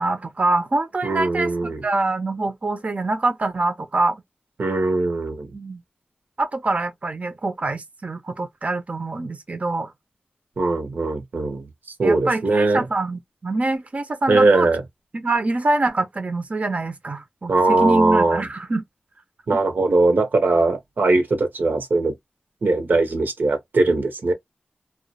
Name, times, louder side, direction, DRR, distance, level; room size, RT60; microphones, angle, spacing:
voice 1, 0.0-1.5 1.8-4.2 5.5-5.8 6.4-9.9 12.0-14.7 15.1-18.8, right 2 dB, 45° right, 0.4 m, -24 dB
voice 2, 1.0-1.8 4.6-5.5 10.6-11.7 12.0-12.9 14.3-14.8 17.5-18.4 19.5-22.1 22.6-24.3, right 3 dB, 90° right, 0.6 m, -20 dB
2.2 x 2.0 x 2.7 m
wide cardioid pair, 65°, 3 cm